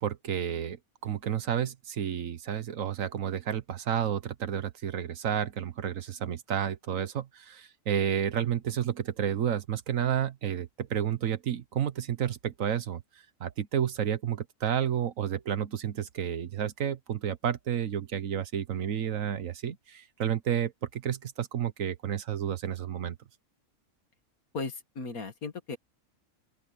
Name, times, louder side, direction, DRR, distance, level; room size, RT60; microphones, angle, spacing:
voice 1, 0.0-0.8 1.0-13.0 13.4-23.2, right 9 dB, 65° right, 1.4 m, -31 dB
voice 2, 24.5-25.8, left 3 dB, 80° left, 2.4 m, -36 dB
open air
omnidirectional pair, 1.5 m